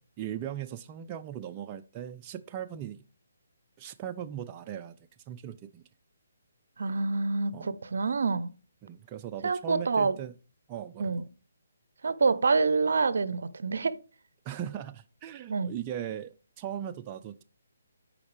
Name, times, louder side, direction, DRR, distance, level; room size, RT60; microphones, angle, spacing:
voice 1, 0.0-3.0 3.8-5.0 5.3-5.8 7.5-7.7 8.8-10.3 10.7-11.1 14.4-17.4, right 10 dB, 25° right, 0.3 m, -38 dB
voice 2, 6.8-8.5 9.4-10.2 11.0-11.2 12.0-14.0 15.5-15.7, right 4 dB, 75° right, 0.5 m, -27 dB
8.5 x 5.2 x 3.2 m
hypercardioid pair, 155°, 0 cm